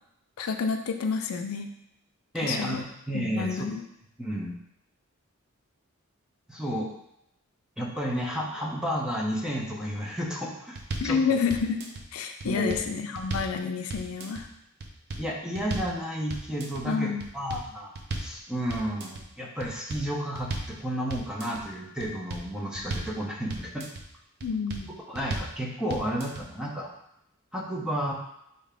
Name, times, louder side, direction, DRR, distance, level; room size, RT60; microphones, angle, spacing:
voice 1, 0.4-1.7 2.4-2.8 3.1-3.8 11.0-11.8 12.1-14.5 16.8-17.3 24.4-24.9, left 5 dB, 80° left, 5 dB, 0.4 m, -29 dB
voice 2, 2.3-3.7 4.2-4.6 6.5-6.9 7.8-11.2 12.4-12.8 15.2-23.9 25.1-26.9 27.5-28.1, equal, 5° right, -2 dB, 0.6 m, -32 dB
sound 1, 10.8-11.2 11.5-12.0 12.4-13.6 13.9-14.4 14.8-15.3 15.5-16.0 16.3-16.8 17.2-18.4 18.7-19.2 19.6-20.8 21.1-21.6 22.0-23.2 23.5-24.0 24.4-24.9 25.1-25.6 25.9-26.4, right 2 dB, 50° right, 0.6 m, -35 dB
4.9 x 2.8 x 3.3 m, 0.79 s
head